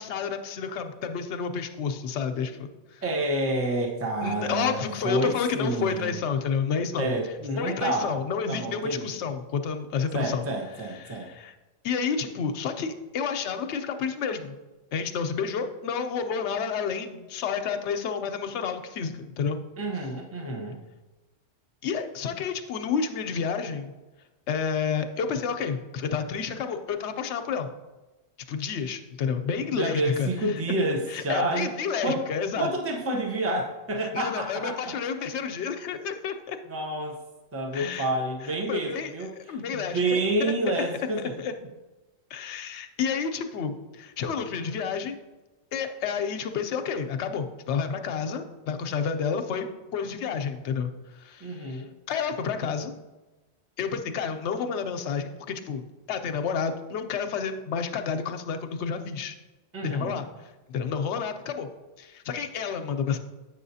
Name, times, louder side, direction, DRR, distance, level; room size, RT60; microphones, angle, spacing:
voice 1, 0.0-3.0 4.2-7.1 7.6-10.5 10.9-11.5 11.8-14.6 14.9-19.6 21.8-23.9 24.5-27.7 28.5-30.8 31.1-32.7 34.0-36.6 37.7-38.1 38.5-40.5 41.4-41.5 42.3-45.2 45.7-52.9 53.8-59.3 59.8-60.3 60.7-61.7 62.0-63.2, left 6 dB, 70° left, 7 dB, 0.9 m, -30 dB
voice 2, 3.0-6.1 7.0-8.2 8.5-9.1 10.1-11.3 19.8-20.8 29.7-31.7 32.0-32.2 32.6-34.9 36.7-37.2 37.5-39.3 39.7-41.3 51.4-51.9 59.7-60.2, right 1 dB, 15° right, 0 dB, 0.6 m, -29 dB
8.0 x 5.6 x 2.7 m, 1.1 s
omnidirectional pair, 1.3 m